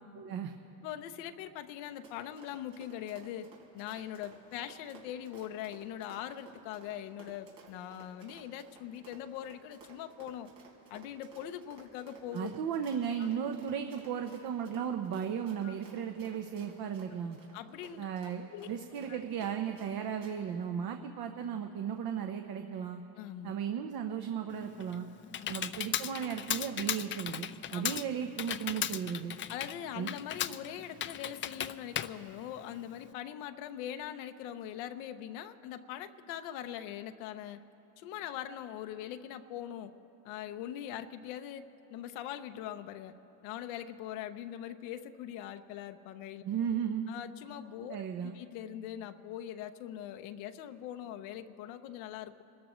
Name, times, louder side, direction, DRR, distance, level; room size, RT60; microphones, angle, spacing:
voice 1, 0.1-0.5 12.3-17.4 18.0-23.0 23.4-25.1 25.5-29.3 29.9-30.1 46.4-47.1 47.9-48.3, right 8 dB, 60° right, 5 dB, 0.9 m, -35 dB
voice 2, 0.8-3.5 3.7-10.5 10.9-12.5 13.2-13.3 15.6-15.7 17.5-18.1 18.5-18.7 19.1-19.2 23.2-23.5 25.4-25.5 27.7-28.0 29.5-37.6 38.0-39.9 40.2-41.6 41.9-43.1 43.4-46.4 47.1-48.0 48.2-52.4, left 11 dB, 90° left, 9 dB, 0.8 m, -42 dB
Run, 1.8-19.9 20.2-20.3, right 5 dB, 80° right, 4.2 m, -56 dB
Computer keyboard, 24.5-33.1, left 10 dB, 30° left, 0.4 m, -37 dB
26.5 x 13.5 x 3.1 m, 2.9 s
supercardioid pair, 95°, 42 cm